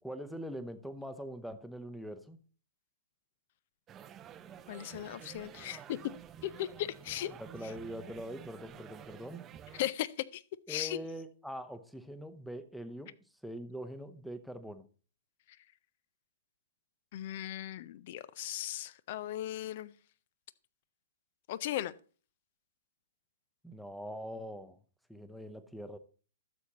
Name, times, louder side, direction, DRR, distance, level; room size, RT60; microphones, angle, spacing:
voice 1, 0.0-2.4 7.3-9.4 10.7-13.1 13.4-14.9 23.6-24.8 25.1-26.0, equal, ahead, 0.8 m, -43 dB
sound 1, 3.9-9.9, right 9 dB, 25° right, 0.5 m, -51 dB
voice 2, 4.7-6.0 6.4-7.3 9.8-10.4 10.7-11.0 17.1-19.9 21.5-21.9, left 13 dB, 50° left, 0.5 m, -37 dB
12.5 x 7.0 x 2.9 m
figure-of-eight pair, 115°, 0 cm